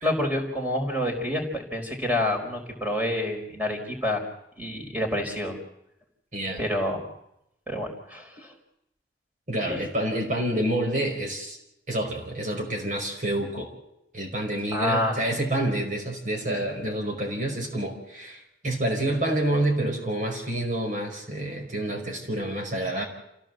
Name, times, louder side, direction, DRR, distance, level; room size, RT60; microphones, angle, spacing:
voice 1, 0.0-4.2 4.6-5.6 6.6-7.0 7.7-8.5 9.7-9.8 14.7-15.2, left 1 dB, 10° right, 2 dB, 4.7 m, -28 dB
voice 2, 9.5-11.6 11.9-13.7 14.1-23.0, right 1 dB, 45° right, 2 dB, 5.3 m, -28 dB
27.5 x 16.5 x 7.7 m, 0.82 s
head